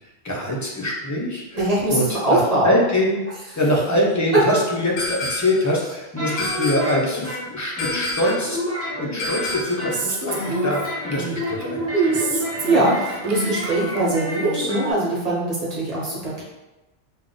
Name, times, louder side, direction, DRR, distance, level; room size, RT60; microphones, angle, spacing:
voice 1, 0.2-3.2 3.6-8.6 9.0-12.9, left 1 dB, 20° left, -3 dB, 0.5 m, -24 dB
voice 2, 1.5-2.7 11.9-12.2 12.7-16.4, right 2 dB, 35° right, -6 dB, 1.1 m, -22 dB
sound 1, 5.0-5.7 6.4-7.1 7.8-8.5 9.2-9.9, left 2 dB, 70° left, 0.8 m, -29 dB
sound 2, 6.2-7.4 7.8-9.5 9.8-14.9, left 1 dB, 15° right, 1.0 m, -29 dB
Female speech woman speaking, 9.9-11.6 12.1-14.6, right 4 dB, 65° right, 0.7 m, -30 dB
3.6 x 2.2 x 3.7 m, 1.0 s
omnidirectional pair, 1.1 m